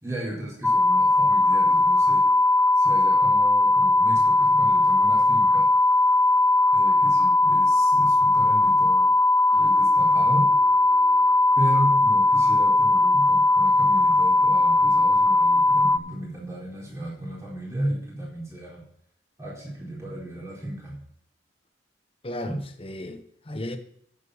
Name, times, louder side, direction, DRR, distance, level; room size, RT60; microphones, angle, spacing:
voice 1, 0.0-2.2 2.8-5.7 6.7-9.1 9.6-10.5 11.6-18.8 19.4-21.0 22.4-22.6, right 1 dB, 15° right, 4.1 m, -34 dB
sound 1, 0.6-16.0, left 2 dB, 5° left, 0.3 m, -19 dB
sound 2, 9.5-16.0 16.5-17.0, left 3 dB, 50° right, 4.6 m, -54 dB
voice 2, 22.2-23.8, left 1 dB, 30° left, 1.0 m, -35 dB
10.0 x 7.6 x 6.4 m
head